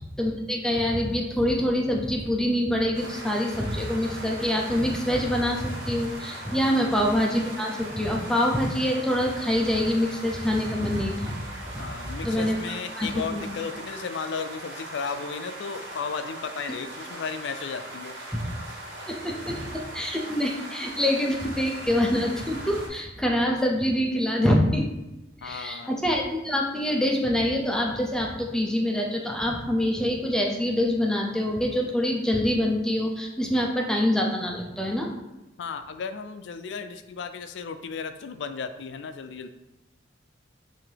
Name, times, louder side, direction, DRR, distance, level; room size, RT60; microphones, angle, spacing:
voice 1, 0.0-11.4 11.7-11.8 12.2-13.5 18.3-18.4 19.1-24.8 25.4-35.1, left 1 dB, 5° left, 0 dB, 0.6 m, -25 dB
sound 1, 2.9-22.9, right 1 dB, 70° right, 1.3 m, -40 dB
voice 2, 11.8-18.2 25.4-25.9 35.6-39.5, left 5 dB, 65° left, 9 dB, 0.4 m, -34 dB
5.7 x 2.8 x 3.4 m, 0.98 s
head